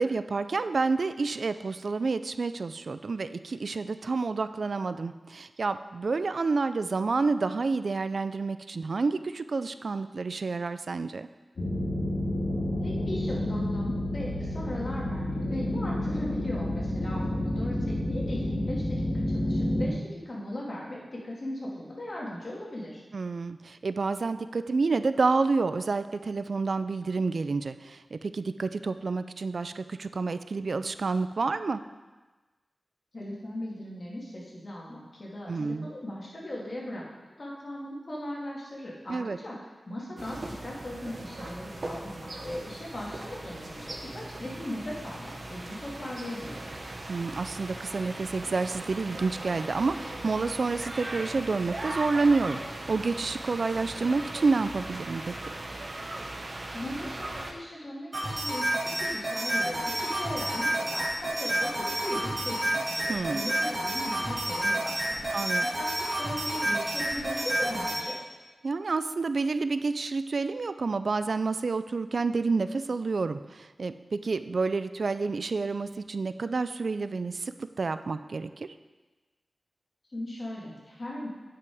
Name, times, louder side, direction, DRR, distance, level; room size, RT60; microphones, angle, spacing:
voice 1, 0.0-11.3 23.1-31.8 35.5-35.9 39.1-39.4 47.1-55.3 63.1-63.5 65.3-65.7 68.6-78.7, right 4 dB, 70° right, 11 dB, 0.3 m, -29 dB
sound 1, 11.6-19.9, left 1 dB, 80° left, 2.2 m, -29 dB
voice 2, 12.8-23.0 33.1-37.0 37.4-39.6 39.9-46.7 56.7-65.3 65.8-68.2 80.1-81.3, left 1 dB, 50° left, -4 dB, 2.3 m, -38 dB
sound 2, 40.2-57.5, right 2 dB, 50° right, 0.9 m, -39 dB
sound 3, 58.1-68.0, right 1 dB, 25° right, 3.1 m, -29 dB
9.1 x 5.7 x 4.8 m, 1.2 s
wide cardioid pair, 70°, 0 cm